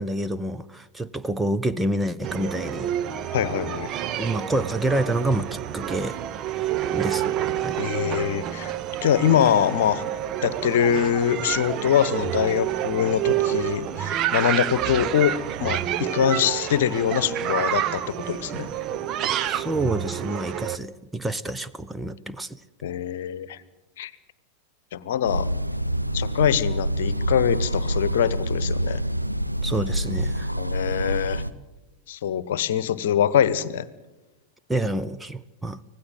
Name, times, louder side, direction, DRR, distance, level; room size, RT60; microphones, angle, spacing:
voice 1, 0.0-2.9 4.2-6.2 6.5-7.8 19.4-22.6 29.6-30.5 34.7-35.8, right 1 dB, 5° right, 10 dB, 0.7 m, -28 dB
sound 1, 2.2-20.8, right 11 dB, 35° right, 0.9 m, -28 dB
voice 2, 3.3-3.9 7.8-8.7 9.0-10.0 10.4-18.7 22.8-23.6 24.0-24.1 24.9-25.5 26.1-29.0 30.6-31.4 32.1-33.9, left 9 dB, 55° left, 17 dB, 1.1 m, -23 dB
sound 2, 25.3-31.5, right 1 dB, 90° right, 0.8 m, -26 dB
25.5 x 17.5 x 8.0 m, 1.0 s
figure-of-eight pair, 90°, 0 cm